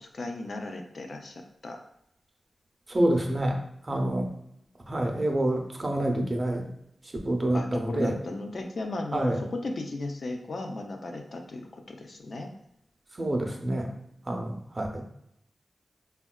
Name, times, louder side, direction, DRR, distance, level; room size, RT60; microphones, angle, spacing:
voice 1, 0.0-1.3 1.6-1.8 7.5-12.5, left 2 dB, 65° left, 3 dB, 0.4 m, -35 dB
voice 2, 2.9-4.3 4.9-6.7 7.2-8.1 9.1-9.4 13.2-13.9 14.3-15.0, right 1 dB, 35° right, 3 dB, 0.5 m, -27 dB
3.5 x 2.2 x 2.2 m, 0.76 s
cardioid pair, 60°, 0 cm